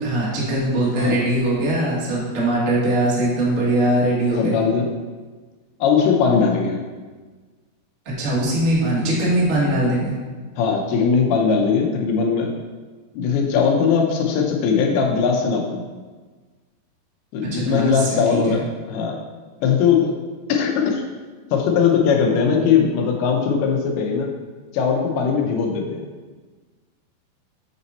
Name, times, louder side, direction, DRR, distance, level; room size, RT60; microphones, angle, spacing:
voice 1, 0.0-4.6 8.0-10.1 17.5-18.2 18.4-18.6, right 1 dB, 75° right, -6 dB, 0.7 m, -21 dB
voice 2, 4.4-4.9 5.8-6.8 10.6-12.5 13.1-15.8 17.3-18.6 18.9-19.2 19.6-20.1 20.5-21.0 21.5-24.3 24.7-26.1, left 6 dB, 85° left, 1 dB, 2.8 m, -19 dB
7.5 x 4.2 x 4.1 m, 1.4 s
omnidirectional pair, 4.5 m